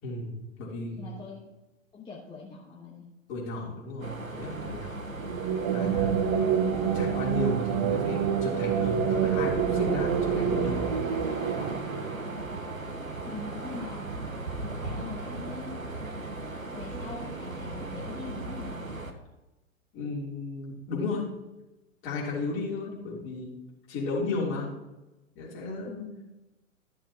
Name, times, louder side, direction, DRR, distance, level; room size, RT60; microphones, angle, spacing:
voice 1, 0.0-0.3 0.6-1.1 3.3-5.0 5.7-10.9 11.5-11.8 19.9-21.3 22.0-23.5 23.9-24.7 25.3-26.1, left 2 dB, 30° left, -5 dB, 3.4 m, -34 dB
voice 2, 1.0-1.4 1.9-3.0 5.1-5.4 13.2-14.1 14.6-15.8 16.7-18.8 22.9-23.3 25.9-26.2, left 4 dB, 10° left, -5 dB, 1.3 m, -43 dB
sound 1, 4.0-19.1, right 2 dB, 90° right, 1.2 m, -37 dB
sound 2, 5.2-12.6, right 8 dB, 25° right, 0.5 m, -27 dB
13.5 x 7.0 x 3.0 m, 1.0 s
figure-of-eight pair, 110°, 40 cm